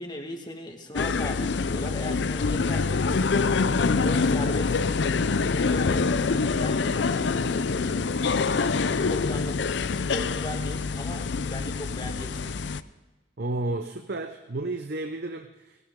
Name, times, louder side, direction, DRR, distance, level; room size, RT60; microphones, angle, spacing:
voice 1, 0.0-3.7 4.0-5.0 5.7-12.5, left 1 dB, 20° left, 4 dB, 1.8 m, -38 dB
sound 1, 0.9-12.8, left 4 dB, 60° left, 0.5 m, -25 dB
voice 2, 13.4-15.9, right 2 dB, 55° right, 7 dB, 0.7 m, -32 dB
18.5 x 18.5 x 3.8 m, 1.2 s
head